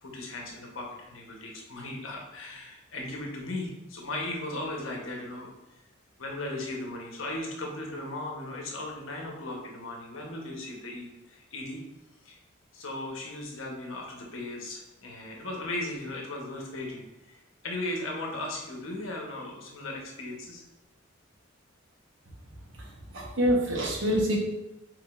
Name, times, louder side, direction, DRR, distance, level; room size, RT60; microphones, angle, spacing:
voice 1, 0.0-5.5 6.2-11.8 12.2-12.4 12.7-20.6, left 2 dB, 75° left, 0 dB, 1.0 m, -37 dB
voice 2, 22.7-24.4, equal, 65° right, -2 dB, 1.1 m, -27 dB
4.9 x 3.8 x 2.5 m, 0.95 s
head